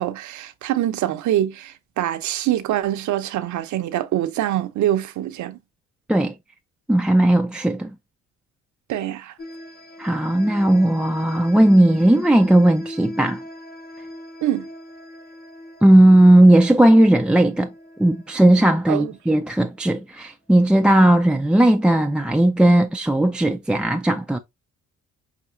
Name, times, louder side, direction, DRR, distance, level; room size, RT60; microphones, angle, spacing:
voice 1, 0.0-5.6 8.9-9.3 14.4-14.7 18.9-19.1, right 12 dB, 70° right, 0.7 m, -24 dB
voice 2, 6.9-7.9 10.0-13.4 15.8-17.7 18.0-24.4, right 1 dB, 5° right, 0.3 m, -16 dB
sound 1, 9.4-19.8, left 1 dB, 30° left, 1.0 m, -40 dB
5.9 x 2.7 x 2.5 m
cardioid pair, 90°, 30 cm